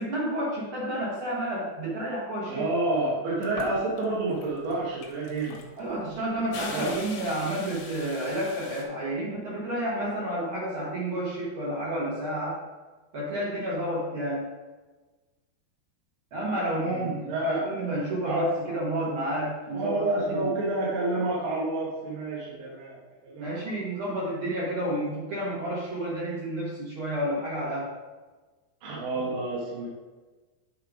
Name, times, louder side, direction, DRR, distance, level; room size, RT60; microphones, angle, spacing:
voice 1, 0.0-2.7 5.8-12.6 13.1-14.4 16.3-20.5 23.4-27.9, right 1 dB, 65° right, -6 dB, 1.3 m, -30 dB
voice 2, 2.5-5.6 6.5-7.0 16.9-17.7 18.2-18.5 19.7-23.0 23.2-23.9 28.8-29.9, right 2 dB, 80° right, -6 dB, 3.6 m, -29 dB
sound 1, 3.4-4.0 4.4-8.8, left 5 dB, 70° left, 1.8 m, -42 dB
9.8 x 3.9 x 5.0 m, 1.3 s
omnidirectional pair, 4.7 m